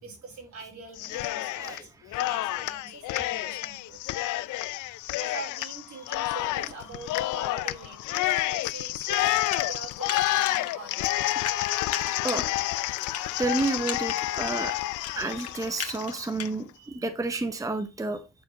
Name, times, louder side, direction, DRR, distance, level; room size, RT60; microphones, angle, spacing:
voice 1, 0.0-4.0 5.2-11.1 18.2-18.3, right 3 dB, 70° right, 4.3 m, -43 dB
Cheering, 1.0-1.8 2.1-16.5, left 17 dB, 85° left, 0.5 m, -29 dB
sound 1, 9.3-10.7 11.0-16.5, left 7 dB, 50° left, 1.5 m, -37 dB
voice 2, 12.0-12.5 13.4-14.7 15.2-18.2, right 3 dB, 10° right, 0.9 m, -30 dB
9.5 x 4.4 x 3.9 m
cardioid pair, 90°, 30 cm